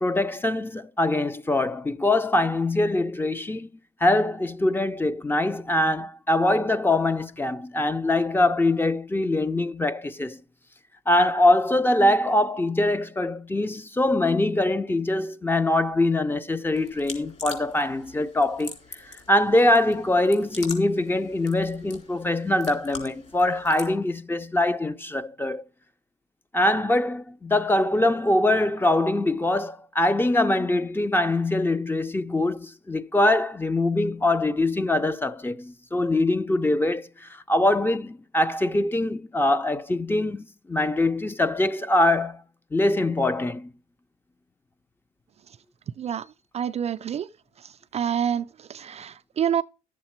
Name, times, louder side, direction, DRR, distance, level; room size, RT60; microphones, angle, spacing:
voice 1, 0.0-3.7 4.0-10.4 11.1-18.7 19.0-25.6 26.5-42.4 42.7-43.7, left 1 dB, 10° left, 0.6 m, -23 dB
sound 1, 16.7-24.0, left 4 dB, 40° left, 3.8 m, -43 dB
voice 2, 46.5-47.3 47.6-49.6, right 9 dB, 40° right, 0.4 m, -28 dB
11.5 x 7.4 x 4.4 m
cardioid pair, 110°, 17 cm